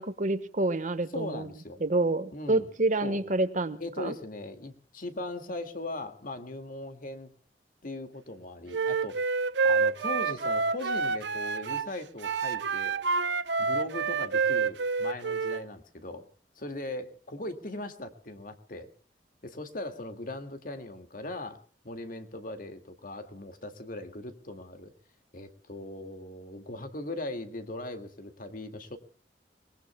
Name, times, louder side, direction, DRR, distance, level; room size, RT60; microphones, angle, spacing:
voice 1, 0.0-1.5 1.8-4.1, right 2 dB, 45° right, 11 dB, 1.3 m, -28 dB
voice 2, 1.1-1.8 2.3-2.7 3.0-3.2 3.8-7.3 7.8-9.3 9.6-12.9 13.6-16.3 16.6-18.9 19.4-21.6 21.8-24.9 25.3-29.0, left 2 dB, 50° left, 8 dB, 2.1 m, -39 dB
Wind instrument woodwind instrument, 8.7-11.9 12.2-15.6, right 5 dB, 85° right, 0.8 m, -28 dB
30.0 x 20.0 x 2.2 m, 0.42 s
head